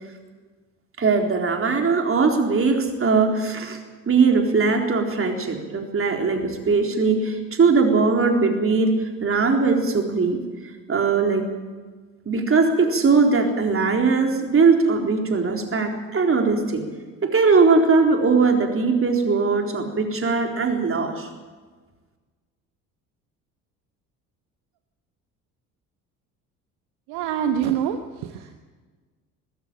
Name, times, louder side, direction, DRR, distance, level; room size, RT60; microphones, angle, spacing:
voice 1, 1.0-3.8 4.1-10.4 10.9-11.4 12.3-16.8 17.2-21.3, right 4 dB, 30° right, 3 dB, 4.0 m, -20 dB
voice 2, 27.1-28.6, right 9 dB, 55° right, 8 dB, 1.3 m, -26 dB
20.0 x 17.0 x 8.7 m, 1.4 s
figure-of-eight pair, 55°, 45 cm